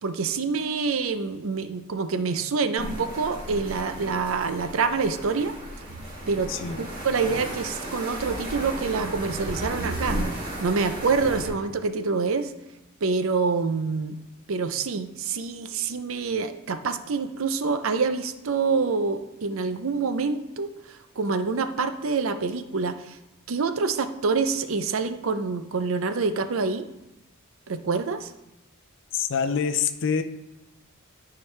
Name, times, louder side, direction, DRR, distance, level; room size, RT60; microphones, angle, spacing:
voice 1, 0.0-5.5 6.3-6.5 6.8-10.2 10.6-12.5 13.0-14.1 14.5-23.2 23.5-26.9 27.7-28.3, right 4 dB, 70° right, 10 dB, 0.5 m, -26 dB
sound 1, 2.8-11.5, right 1 dB, 45° right, 2.8 m, -34 dB
voice 2, 6.5-6.8 29.1-30.2, left 6 dB, 60° left, 10 dB, 0.5 m, -25 dB
12.5 x 4.8 x 3.2 m, 0.96 s
head